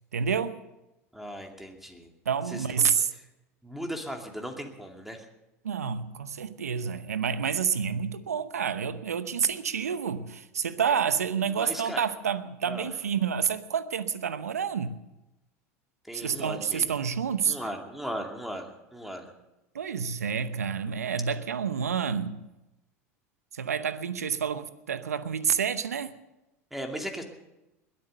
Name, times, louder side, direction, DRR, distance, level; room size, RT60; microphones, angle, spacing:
voice 1, 0.1-0.6 2.2-3.1 5.6-14.9 16.1-17.6 19.7-22.4 23.5-26.1, right 7 dB, 85° right, 0.8 m, -29 dB
voice 2, 1.1-2.1 2.5-2.9 3.6-5.2 11.6-12.0 12.7-12.9 16.1-16.9 17.5-19.3 26.7-27.2, equal, 5° right, 2.5 m, -37 dB
21.0 x 8.7 x 6.6 m
hypercardioid pair, 85°, 8 cm